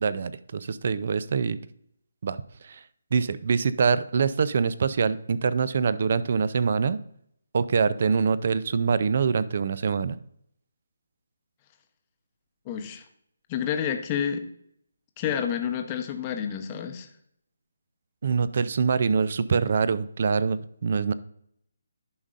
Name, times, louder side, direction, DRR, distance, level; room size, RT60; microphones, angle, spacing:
voice 1, 0.0-1.6 2.2-2.4 2.6-2.8 3.1-7.0 7.5-10.2 18.2-21.1, right 5 dB, 50° right, 16 dB, 0.4 m, -24 dB
voice 2, 12.7-13.0 13.5-14.4 15.2-17.1, left 8 dB, 20° left, 6 dB, 0.7 m, -29 dB
11.0 x 5.4 x 2.5 m, 0.71 s
hypercardioid pair, 165°, 0 cm